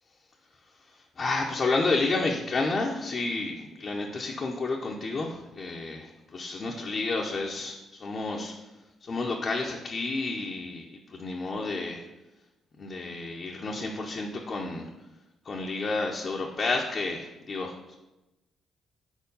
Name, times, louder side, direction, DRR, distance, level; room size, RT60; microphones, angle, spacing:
voice 1, 1.2-7.7 8.0-8.5 9.1-10.8 11.2-12.0 12.8-14.9 15.5-18.0, left 3 dB, 40° left, -1 dB, 0.7 m, -30 dB
4.5 x 4.2 x 5.4 m, 1.0 s
cardioid pair, 90°, 0 cm